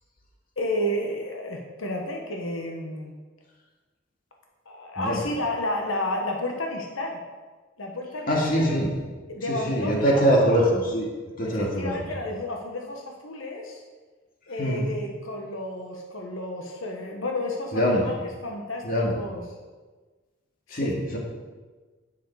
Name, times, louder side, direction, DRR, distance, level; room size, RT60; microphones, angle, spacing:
voice 1, 0.6-3.1 4.6-7.2 7.8-8.8 9.3-10.3 11.4-13.8 14.5-19.4 20.7-21.0, left 1 dB, 90° left, 1 dB, 1.4 m, -31 dB
voice 2, 8.3-8.9 9.5-11.1 11.4-11.9 14.6-14.9 17.7-18.0 18.8-19.2 20.7-21.2, equal, 45° left, -1 dB, 2.3 m, -23 dB
10.5 x 9.2 x 4.9 m, 1.3 s
head